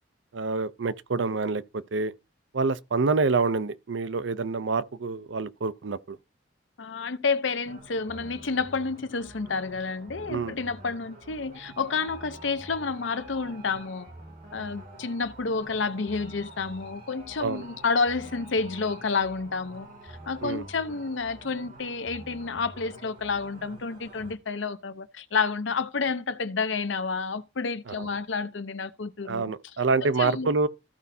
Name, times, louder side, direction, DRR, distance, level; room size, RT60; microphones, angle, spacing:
voice 1, 0.3-2.1 2.5-6.2 10.3-10.5 17.4-17.6 20.4-20.6 27.9-28.1 29.3-30.7, right 4 dB, 80° right, 0.6 m, -27 dB
voice 2, 6.8-14.1 14.5-19.9 20.3-29.5 30.0-30.5, left 4 dB, 90° left, 0.8 m, -30 dB
sound 1, 7.6-24.3, right 1 dB, 50° right, 2.5 m, -47 dB
15.0 x 5.2 x 2.7 m
head